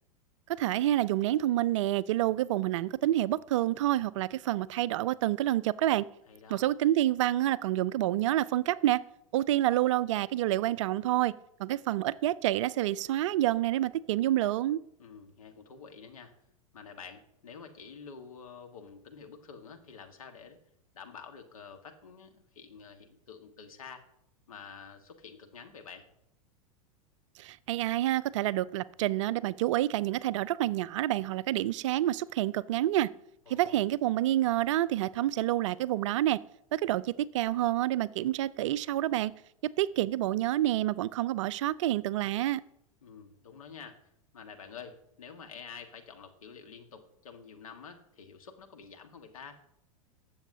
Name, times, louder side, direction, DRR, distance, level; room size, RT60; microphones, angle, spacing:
voice 1, 0.6-6.1 6.5-9.0 9.3-11.3 11.6-14.8 27.4-33.1 33.5-36.4 36.7-39.3 39.6-42.6, right 14 dB, 55° right, 0.4 m, -28 dB
voice 2, 6.3-6.7 15.0-16.3 16.7-20.6 20.9-24.1 24.5-26.1 33.5-33.8 43.0-49.6, left 6 dB, 70° left, 1.5 m, -48 dB
20.0 x 7.1 x 2.7 m
figure-of-eight pair, 90°, 18 cm